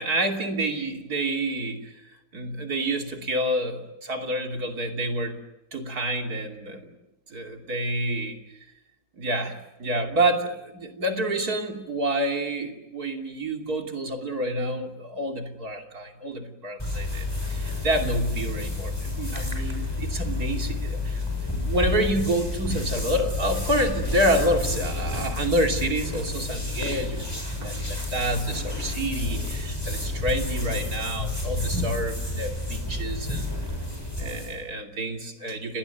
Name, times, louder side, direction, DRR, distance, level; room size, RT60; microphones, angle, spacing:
voice 1, 0.0-1.9 2.3-5.4 5.7-6.9 7.3-8.4 9.2-21.2 21.6-27.3 27.6-33.5 34.2-35.8, right 1 dB, 50° right, 4 dB, 3.3 m, -28 dB
sound 1, 16.8-34.6, left 2 dB, 10° left, 6.8 m, -30 dB
30.0 x 20.0 x 9.1 m, 0.97 s
omnidirectional pair, 2.0 m